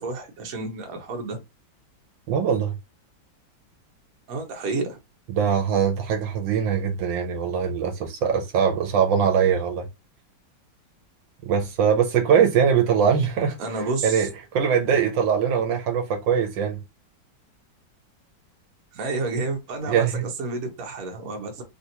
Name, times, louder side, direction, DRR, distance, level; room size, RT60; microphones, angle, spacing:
voice 1, 0.0-1.4 4.3-5.0 13.6-14.3 18.9-21.6, right 3 dB, 55° right, 1.1 m, -30 dB
voice 2, 2.3-2.8 5.3-9.9 11.4-16.8 19.9-20.2, right 7 dB, 80° right, 1.4 m, -22 dB
3.3 x 2.5 x 2.7 m
omnidirectional pair, 2.1 m